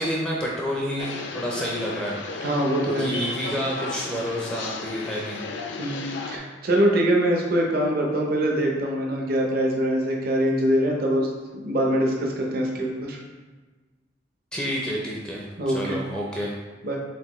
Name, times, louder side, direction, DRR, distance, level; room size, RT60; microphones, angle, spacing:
voice 1, 0.0-2.5 3.0-5.4 14.5-16.6, equal, 5° left, -3 dB, 0.4 m, -29 dB
sound 1, 1.0-6.4, left 3 dB, 65° left, 0.4 m, -34 dB
voice 2, 2.4-3.2 5.8-11.3 11.5-13.2 15.6-16.0 16.8-17.0, right 1 dB, 50° right, 0 dB, 0.6 m, -23 dB
4.3 x 3.5 x 3.0 m, 1.3 s
head